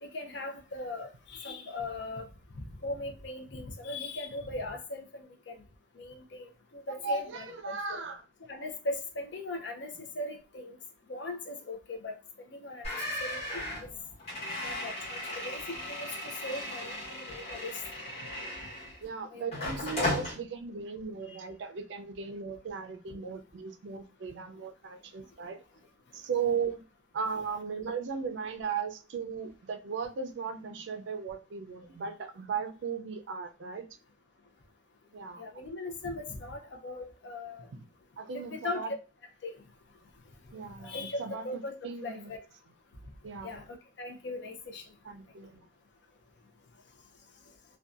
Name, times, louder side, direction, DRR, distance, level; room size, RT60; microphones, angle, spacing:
voice 1, 0.0-2.3 2.5-5.6 5.9-8.0 8.4-10.8 11.1-12.2 12.4-13.9 14.6-17.8 18.6-18.7 19.3-19.7 21.3-21.4 35.4-37.7 38.3-39.0 39.4-39.6 40.8-41.7 42.0-42.4 43.4-44.9, left 2 dB, 60° left, 0.5 m, -39 dB
voice 2, 6.9-8.2 19.0-25.6 26.1-26.8 27.1-33.9 35.1-35.6 38.2-38.9 40.5-42.3 43.2-43.5 45.0-45.7, right 5 dB, 65° right, 0.4 m, -37 dB
sound 1, 12.8-19.1 19.5-20.3, left 1 dB, 35° left, 1.2 m, -36 dB
2.6 x 2.2 x 2.4 m
head